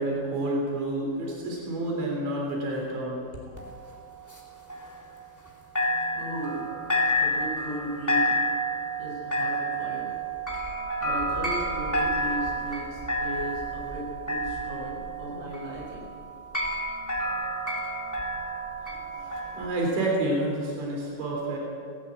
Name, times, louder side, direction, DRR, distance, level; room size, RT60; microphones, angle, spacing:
voice 1, 0.0-3.2 3.6-3.7 18.8-21.6, right 1 dB, 85° right, -2 dB, 5.8 m, -29 dB
sound 1, 3.6-5.5 5.7-19.6, equal, 5° left, 2.7 m, -30 dB
voice 2, 6.2-6.7 7.2-8.3 9.0-10.1 11.0-16.1, equal, 35° right, -4 dB, 9.0 m, -36 dB
18.5 x 17.5 x 8.8 m, 2.3 s
omnidirectional pair, 5.1 m